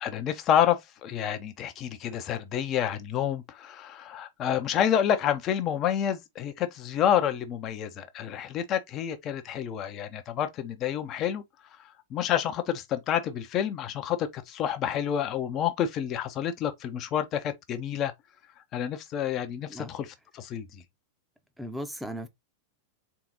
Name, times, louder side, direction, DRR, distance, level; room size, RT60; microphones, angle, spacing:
voice 1, 0.0-11.4 12.1-18.1 18.7-20.8, left 9 dB, 35° left, 0.7 m, -29 dB
voice 2, 21.6-22.3, equal, 5° right, 0.7 m, -36 dB
3.8 x 3.5 x 2.9 m
figure-of-eight pair, 90°, 0 cm